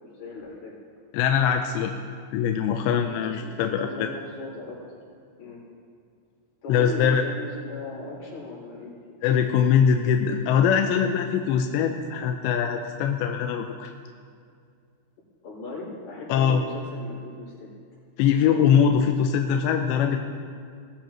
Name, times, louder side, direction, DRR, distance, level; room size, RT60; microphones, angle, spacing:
voice 1, 0.1-0.7 3.0-4.8 5.4-5.6 6.6-9.2 15.4-17.7, left 3 dB, 50° left, -7 dB, 6.3 m, -38 dB
voice 2, 1.1-1.9 2.3-4.1 6.7-7.2 9.2-13.9 16.3-16.6 18.2-20.2, left 7 dB, 85° left, 4 dB, 2.7 m, -22 dB
20.0 x 13.5 x 3.1 m, 2.2 s
omnidirectional pair, 5.5 m